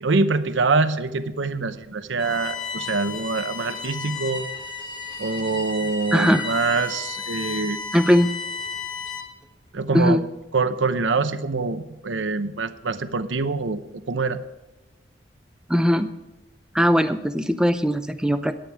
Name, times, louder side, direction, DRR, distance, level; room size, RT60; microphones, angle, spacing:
voice 1, 0.0-4.4 5.2-7.8 9.7-10.2 10.5-14.4, right 3 dB, 85° right, 11 dB, 0.8 m, -24 dB
Bowed string instrument, 2.2-9.4, left 5 dB, 25° left, 1.4 m, -33 dB
voice 2, 6.1-6.5 7.9-8.3 9.9-10.2 15.7-16.1 16.7-18.5, equal, 5° right, 8 dB, 0.6 m, -19 dB
21.5 x 9.0 x 3.5 m, 1.0 s
head